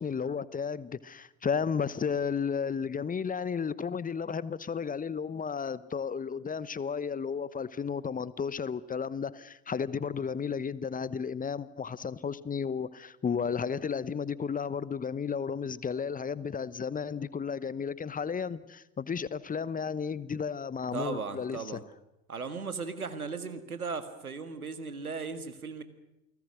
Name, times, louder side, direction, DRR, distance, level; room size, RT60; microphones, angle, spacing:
voice 1, 0.0-21.6, left 6 dB, 20° left, 18 dB, 1.0 m, -33 dB
voice 2, 20.9-21.8 22.3-25.8, right 4 dB, 90° right, 10 dB, 1.8 m, -37 dB
29.5 x 19.5 x 6.4 m, 0.91 s
figure-of-eight pair, 65°, 42 cm